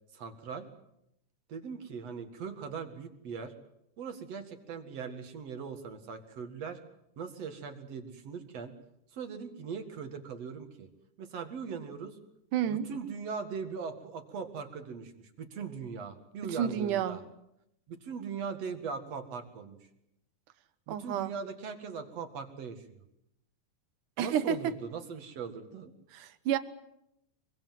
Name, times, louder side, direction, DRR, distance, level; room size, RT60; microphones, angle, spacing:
voice 1, 0.1-0.6 1.5-3.5 4.0-6.8 7.2-8.7 9.1-10.9 11.2-12.2 12.7-17.2 17.9-19.8 20.9-23.0 24.2-25.9, right 6 dB, 55° right, 7 dB, 2.8 m, -40 dB
voice 2, 12.5-12.9 16.4-17.2 20.9-21.3 24.2-24.7 26.1-26.6, right 9 dB, 80° right, 12 dB, 2.7 m, -30 dB
24.5 x 23.5 x 7.7 m, 0.81 s
omnidirectional pair, 3.6 m